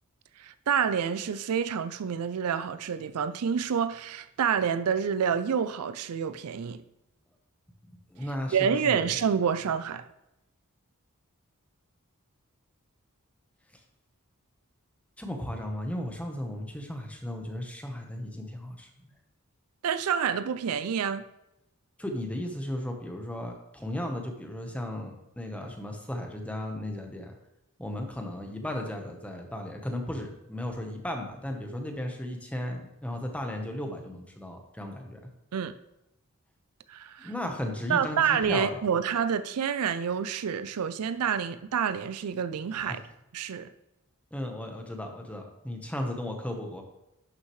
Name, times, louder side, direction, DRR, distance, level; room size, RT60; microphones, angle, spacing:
voice 1, 0.4-6.8 8.5-10.0 19.8-21.2 35.5-35.7 36.9-37.3 37.9-43.0 43.3-43.7, right 7 dB, 85° right, 0.4 m, -28 dB
voice 2, 8.1-9.1 15.2-18.9 22.0-27.3 27.8-35.2 37.2-38.8 42.8-43.0 44.3-46.8, left 1 dB, 5° left, 1.1 m, -35 dB
11.5 x 6.2 x 3.2 m
head